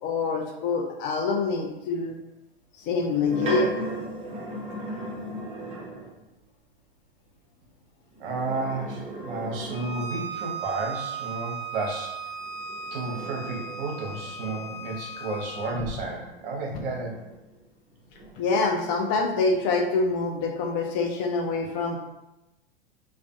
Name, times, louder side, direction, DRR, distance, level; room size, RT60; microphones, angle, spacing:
voice 1, 0.0-2.2 2.8-3.7 18.4-22.0, left 4 dB, 35° left, 2 dB, 0.4 m, -25 dB
sound 1, 2.8-6.2 8.1-10.4 12.4-17.6 18.1-19.9, right 1 dB, 20° right, 0.9 m, -38 dB
voice 2, 8.2-12.2 12.9-17.2, right 3 dB, 60° right, 0 dB, 0.8 m, -32 dB
Bowed string instrument, 9.7-15.8, right 5 dB, 65° left, 0.9 m, -37 dB
2.4 x 2.2 x 2.5 m, 0.95 s
hypercardioid pair, 100°, 31 cm